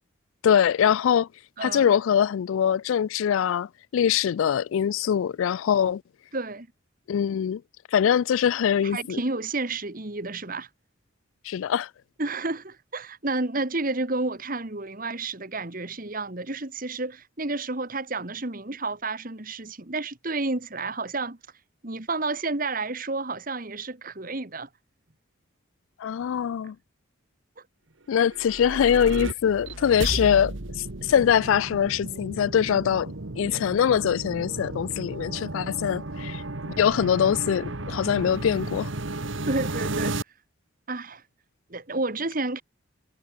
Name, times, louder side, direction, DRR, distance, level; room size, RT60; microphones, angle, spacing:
voice 1, 0.4-1.3 1.6-6.0 7.1-7.6 7.9-9.2 11.4-11.9 26.0-26.8 28.1-38.9, left 8 dB, 75° left, 0.3 m, -23 dB
voice 2, 1.6-1.9 6.3-6.7 8.8-10.7 12.2-21.4 21.8-24.7 39.5-40.2 40.9-41.2 41.7-42.6, right 3 dB, 40° right, 1.7 m, -30 dB
sound 1, 28.2-40.2, right 2 dB, 70° right, 1.6 m, -33 dB
head